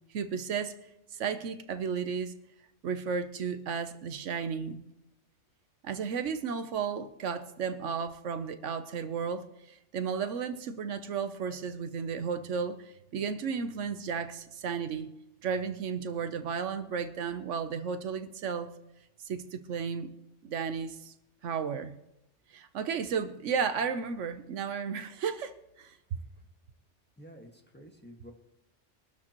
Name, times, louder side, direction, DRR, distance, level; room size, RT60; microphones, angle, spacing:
voice 1, 0.1-0.8 1.1-2.4 2.8-4.8 5.8-15.1 15.4-18.7 19.2-20.1 20.4-21.1 21.4-22.0 22.5-26.0, right 6 dB, 80° right, 1.1 m, -33 dB
voice 2, 27.2-28.3, equal, 10° left, 1.6 m, -51 dB
23.0 x 12.5 x 3.0 m
omnidirectional pair, 1.2 m